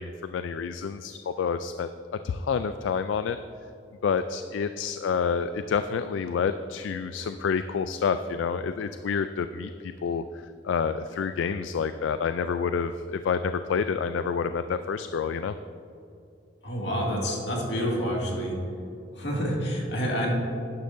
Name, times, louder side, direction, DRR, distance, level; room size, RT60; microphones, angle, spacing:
voice 1, 0.0-1.9 2.2-3.4 4.0-15.6, left 6 dB, 80° left, 10 dB, 0.3 m, -28 dB
voice 2, 16.6-18.6 19.1-20.3, equal, 65° left, -3 dB, 2.2 m, -28 dB
11.5 x 10.5 x 2.6 m, 2.6 s
head